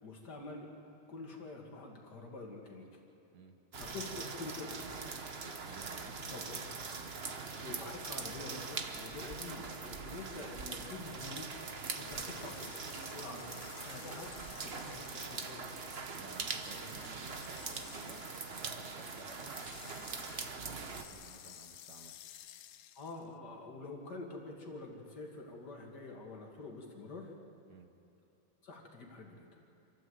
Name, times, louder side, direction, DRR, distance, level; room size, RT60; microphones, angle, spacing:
voice 1, 0.0-0.7 1.1-2.9 3.8-4.1 4.3-5.1 6.3-6.6 7.6-11.5 11.9-13.5 13.8-15.7 23.0-27.3 28.6-29.5, left 3 dB, 55° left, 1 dB, 2.6 m, -47 dB
sound 1, 3.7-21.1, right 4 dB, 40° right, 1.1 m, -42 dB
voice 2, 5.7-6.1 7.0-7.2 16.2-18.2 18.5-22.1 27.7-27.9, right 4 dB, 60° right, 6 dB, 1.5 m, -55 dB
sound 2, 11.8-23.3, left 11 dB, 75° left, 0.8 m, -55 dB
27.5 x 13.0 x 7.9 m, 2.8 s
omnidirectional pair, 2.2 m